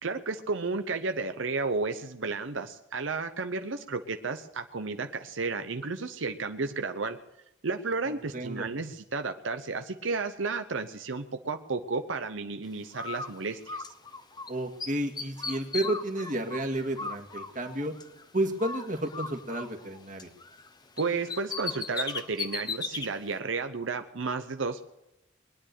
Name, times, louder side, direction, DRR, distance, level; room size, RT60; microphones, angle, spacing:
voice 1, 0.0-7.2 7.6-13.8 21.0-24.8, right 4 dB, 80° right, 7 dB, 0.9 m, -32 dB
voice 2, 8.1-8.7 14.5-17.9 18.3-20.3, right 1 dB, 40° right, 4 dB, 2.0 m, -31 dB
Bird, 12.9-14.5 14.8-18.2 18.6-20.7 21.0-23.1, left 4 dB, 20° left, 0.9 m, -37 dB
21.5 x 10.0 x 6.6 m, 0.89 s
head